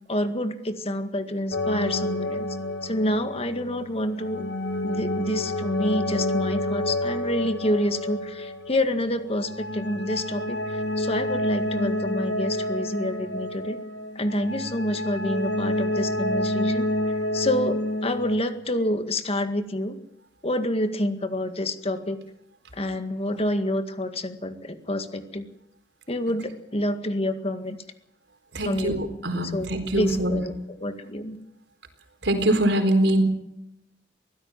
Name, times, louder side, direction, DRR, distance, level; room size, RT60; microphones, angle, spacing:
voice 1, 0.1-2.5 2.8-4.4 4.8-13.8 14.2-20.0 20.4-22.2 22.7-25.5 26.1-27.8 28.6-29.0 29.5-31.4, left 1 dB, 35° left, 8 dB, 1.9 m, -28 dB
sound 1, 1.5-18.4, left 1 dB, 85° left, 3.1 m, -29 dB
voice 2, 28.5-30.4 32.2-33.2, right 1 dB, 85° right, 7 dB, 4.2 m, -23 dB
23.0 x 16.5 x 7.6 m, 0.83 s
head